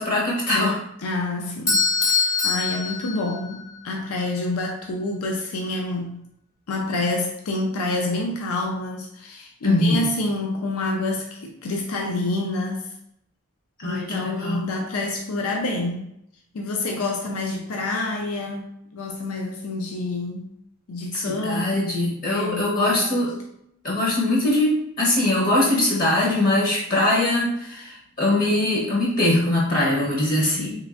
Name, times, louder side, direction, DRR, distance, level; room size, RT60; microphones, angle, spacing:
voice 1, 0.0-0.8 9.6-10.0 13.8-14.7 21.1-23.3 23.8-30.8, left 1 dB, 40° left, -3 dB, 0.7 m, -22 dB
voice 2, 0.5-6.2 6.7-12.9 13.8-16.1 16.5-20.5 20.9-21.9 22.2-23.2, left 2 dB, 80° left, 1 dB, 0.5 m, -28 dB
Bell / Doorbell, 1.7-3.8, left 4 dB, 15° left, 0.3 m, -23 dB
3.3 x 3.1 x 2.4 m, 0.77 s
head